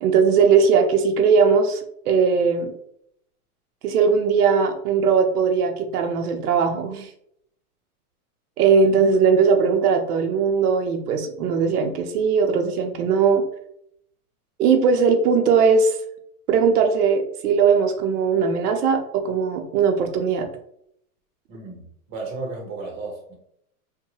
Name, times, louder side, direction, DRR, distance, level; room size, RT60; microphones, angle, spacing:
voice 1, 0.0-2.7 3.8-7.1 8.6-13.4 14.6-16.0 16.5-20.5, right 5 dB, 80° right, 4 dB, 0.6 m, -19 dB
voice 2, 21.5-23.3, right 3 dB, 30° right, 0 dB, 0.8 m, -34 dB
2.7 x 2.2 x 2.8 m, 0.71 s
supercardioid pair, 160°, 45 cm